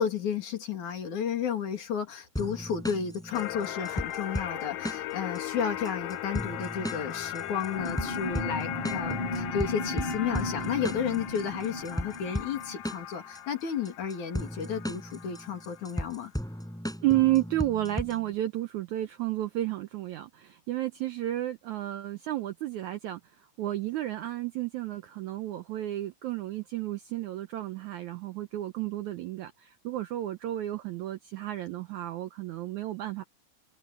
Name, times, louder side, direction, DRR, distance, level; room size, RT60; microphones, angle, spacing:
voice 1, 0.0-16.3, left 7 dB, 55° left, 3.7 m, -32 dB
sound 1, 2.4-18.3, equal, ahead, 5.3 m, -37 dB
sound 2, 3.3-16.0, left 11 dB, 75° left, 3.1 m, -38 dB
sound 3, 7.7-12.7, left 1 dB, 35° left, 5.0 m, -36 dB
voice 2, 17.0-23.2 23.6-33.2, right 15 dB, 75° right, 1.8 m, -32 dB
omnidirectional pair, 4.2 m